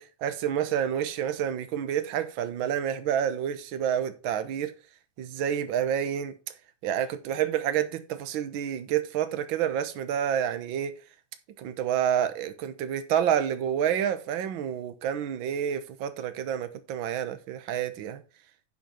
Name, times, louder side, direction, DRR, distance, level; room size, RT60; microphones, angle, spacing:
voice 1, 0.0-4.7 5.2-6.3 6.8-10.9 11.6-18.2, right 9 dB, 75° right, 1.1 m, -29 dB
10.5 x 5.7 x 4.2 m
omnidirectional pair, 3.4 m